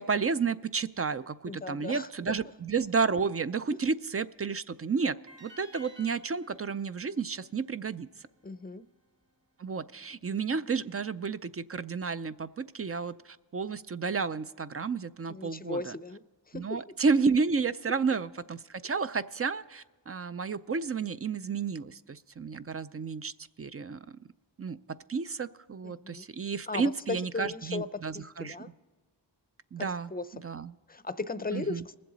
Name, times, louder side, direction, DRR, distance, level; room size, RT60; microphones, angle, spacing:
voice 1, 0.0-5.2 5.4-8.1 9.6-16.0 16.5-23.3 23.6-24.1 24.6-28.6 29.7-30.1 30.4-30.7 31.5-31.8, right 5 dB, 35° right, 13 dB, 0.4 m, -31 dB
voice 2, 1.5-2.1 2.4-2.5 3.7-3.8 8.4-8.8 15.3-16.2 16.5-16.6 25.8-26.3 26.7-28.7 30.1-30.3 30.9-32.0, left 3 dB, 20° left, 14 dB, 0.5 m, -37 dB
sound 1, 5.3-8.4, equal, 85° right, 1.4 m, -55 dB
20.5 x 7.8 x 3.9 m, 1.3 s
wide cardioid pair, 50°, 43 cm